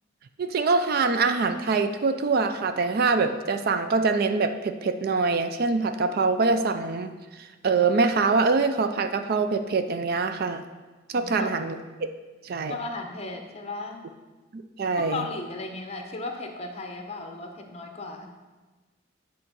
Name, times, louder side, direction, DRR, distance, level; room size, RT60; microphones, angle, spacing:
voice 1, 0.4-7.1 7.4-10.6 11.1-12.1 12.4-12.7 14.5-15.2, right 4 dB, 50° right, 9 dB, 0.4 m, -24 dB
voice 2, 11.1-11.5 12.7-14.0 15.0-18.3, left 3 dB, 35° left, 3 dB, 0.9 m, -35 dB
8.5 x 3.7 x 6.7 m, 1.3 s
head